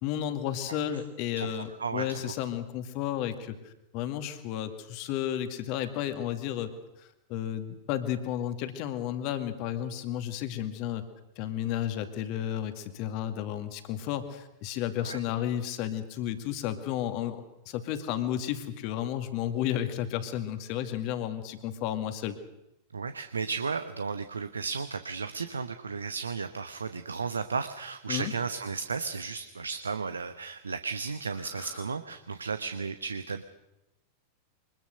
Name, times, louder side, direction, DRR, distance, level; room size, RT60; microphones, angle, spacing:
voice 1, 0.0-6.7 7.0-11.0 11.4-22.4 28.1-28.3 31.5-31.8, left 11 dB, 45° left, 9 dB, 2.2 m, -32 dB
voice 2, 1.4-2.3 15.0-15.2 22.9-33.4, right 5 dB, 75° right, 10 dB, 1.0 m, -34 dB
24.0 x 20.5 x 6.7 m, 0.91 s
figure-of-eight pair, 90°, 0 cm